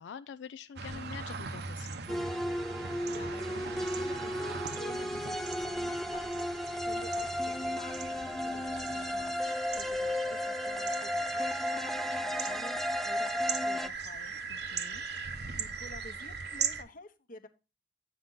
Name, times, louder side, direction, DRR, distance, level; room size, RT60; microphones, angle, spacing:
voice 1, 0.0-2.1 14.5-15.1, left 7 dB, 90° left, 0.3 m, -46 dB
sound 1, 0.8-16.8, right 5 dB, 65° right, 0.8 m, -39 dB
sound 2, 2.1-13.9, left 1 dB, ahead, 0.3 m, -34 dB
voice 2, 2.9-14.3 15.6-17.5, left 2 dB, 50° left, 0.9 m, -51 dB
8.7 x 5.9 x 3.8 m
head